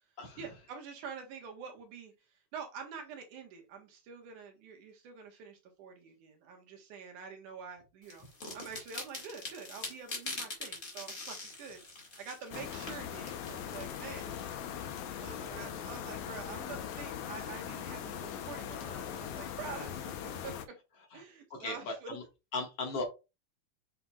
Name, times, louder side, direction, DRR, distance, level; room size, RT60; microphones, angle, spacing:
voice 1, 0.4-2.1 2.5-8.3 8.5-14.4 15.1-20.8 21.1-22.2, right 6 dB, 85° right, 2.9 m, -46 dB
sound 1, 8.1-14.9, left 2 dB, 30° left, 2.1 m, -44 dB
sound 2, 12.5-20.7, left 9 dB, 75° left, 2.2 m, -40 dB
voice 2, 15.1-15.5 21.1-21.2 21.5-22.2 22.5-23.0, left 3 dB, 55° left, 2.7 m, -38 dB
7.6 x 5.6 x 2.4 m
omnidirectional pair, 3.4 m